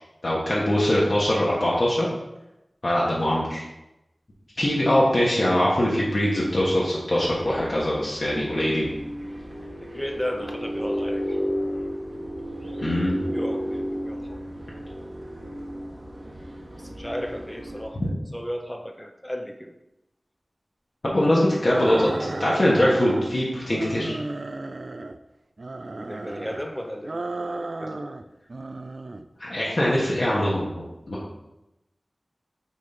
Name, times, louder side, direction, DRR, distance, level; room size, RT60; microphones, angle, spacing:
voice 1, 0.2-2.1 2.8-3.6 4.6-8.9 12.8-13.1 21.0-24.2 29.4-31.4, left 1 dB, 55° left, -6 dB, 1.3 m, -22 dB
sound 1, 7.2-17.8, equal, 40° right, 1.4 m, -33 dB
voice 2, 9.8-11.4 12.6-12.9 13.3-14.4 16.7-19.7 26.0-28.3, equal, 10° left, 4 dB, 0.6 m, -35 dB
sound 2, 21.6-23.4 23.7-25.2 25.6-26.6 27.0-28.2 28.5-29.2, right 2 dB, 60° right, 0.3 m, -34 dB
6.2 x 3.8 x 4.4 m, 0.93 s
wide cardioid pair, 70°, 0 cm